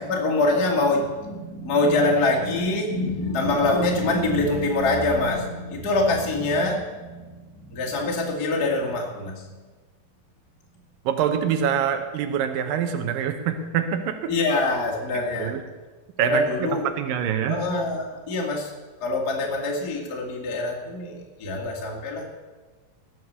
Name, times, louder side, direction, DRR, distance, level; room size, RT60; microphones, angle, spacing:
voice 1, 0.0-9.5 14.3-15.5 16.2-16.9 17.5-18.7 19.0-22.3, left 2 dB, 35° left, -1 dB, 1.8 m, -24 dB
voice 2, 11.1-14.3 15.4-15.6 16.2-16.7 17.0-17.6, right 8 dB, 75° right, 7 dB, 2.7 m, -25 dB
19.5 x 6.6 x 6.8 m, 1.3 s
omnidirectional pair, 4.1 m